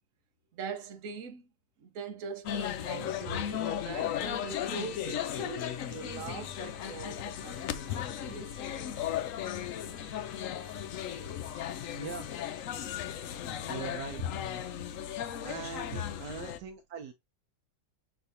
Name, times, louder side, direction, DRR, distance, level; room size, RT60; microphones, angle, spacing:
voice 1, 0.5-1.5 1.8-8.5 13.3-13.5 14.2-14.3 15.9-16.0, right 2 dB, 55° right, 1.2 m, -41 dB
sound 1, 2.4-16.6, left 10 dB, 70° left, 0.8 m, -36 dB
sound 2, 2.5-12.6, left 4 dB, ahead, 2.8 m, -56 dB
voice 2, 11.5-12.3 13.7-14.2 15.4-17.1, right 6 dB, 75° right, 1.2 m, -42 dB
6.0 x 3.3 x 2.6 m
omnidirectional pair, 1.9 m